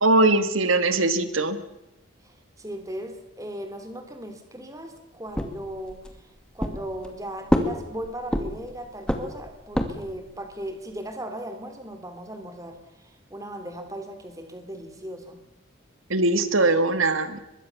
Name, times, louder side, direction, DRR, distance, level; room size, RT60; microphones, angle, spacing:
voice 1, 0.0-1.6 16.1-17.4, right 2 dB, 85° right, 11 dB, 1.8 m, -21 dB
voice 2, 2.2-15.4, right 1 dB, 15° right, 7 dB, 3.2 m, -37 dB
sound 1, 5.3-6.2 6.6-7.2 7.5-8.7 9.1-10.2, equal, 5° left, 2.3 m, -26 dB
23.5 x 22.0 x 7.2 m, 0.97 s
head